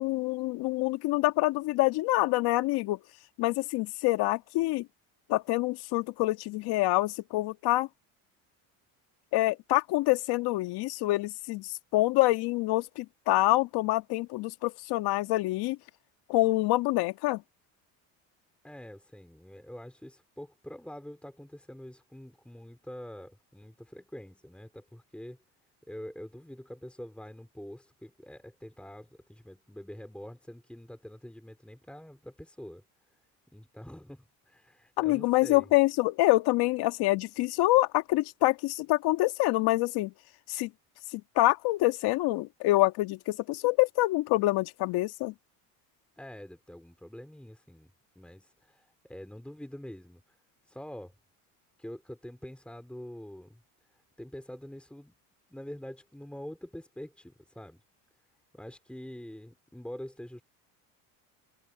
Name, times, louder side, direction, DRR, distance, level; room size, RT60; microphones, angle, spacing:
voice 1, 0.0-3.0 3.4-4.9 5.3-7.9 9.3-15.8 16.3-17.4 35.0-40.1 40.5-40.7 41.1-45.3, left 19 dB, 65° left, 2.0 m, -26 dB
voice 2, 18.6-25.4 25.9-32.8 33.5-35.7 46.2-47.9 48.2-50.2 50.7-51.1 51.8-53.6 54.2-55.1 55.5-57.8 58.5-60.4, equal, 5° left, 4.1 m, -45 dB
supercardioid pair, 100°, 41 cm